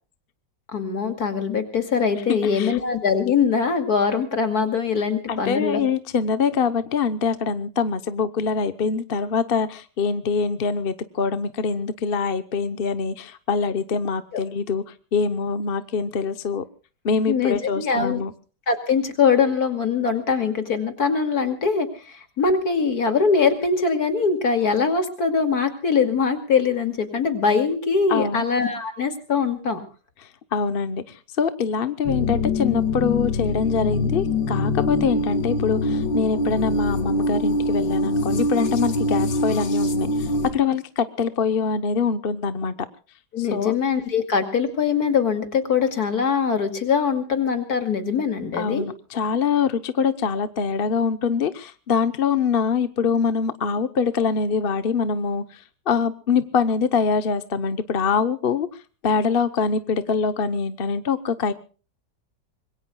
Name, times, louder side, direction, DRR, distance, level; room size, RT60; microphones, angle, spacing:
voice 1, 0.7-5.8 14.3-14.4 17.3-18.2 18.7-29.8 43.3-48.9, left 5 dB, 60° left, 7 dB, 2.9 m, -22 dB
voice 2, 2.3-2.8 5.3-14.8 15.1-16.6 17.0-18.3 28.1-28.4 30.5-42.7 43.5-43.7 48.6-58.7 59.0-61.5, left 5 dB, 40° left, 11 dB, 0.9 m, -24 dB
sound 1, 32.0-40.5, left 2 dB, 85° left, 2.4 m, -24 dB
26.0 x 21.5 x 2.3 m, 0.36 s
omnidirectional pair, 1.9 m